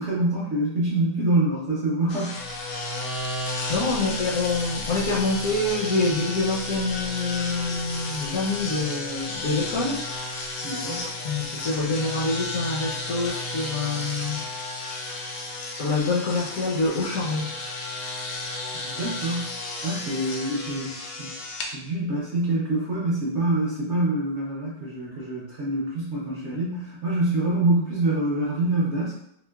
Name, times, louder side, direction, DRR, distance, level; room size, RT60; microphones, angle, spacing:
voice 1, 0.0-2.4 10.6-11.1 18.8-19.5 19.8-21.3 21.6-29.2, right 2 dB, 55° right, -6 dB, 0.8 m, -26 dB
sound 1, 2.1-21.7, left 2 dB, 85° left, 1.2 m, -33 dB
voice 2, 3.7-10.0 10.9-14.5 15.7-17.6, left 3 dB, 65° left, -6 dB, 0.9 m, -26 dB
4.4 x 2.1 x 2.2 m, 0.75 s
omnidirectional pair, 1.8 m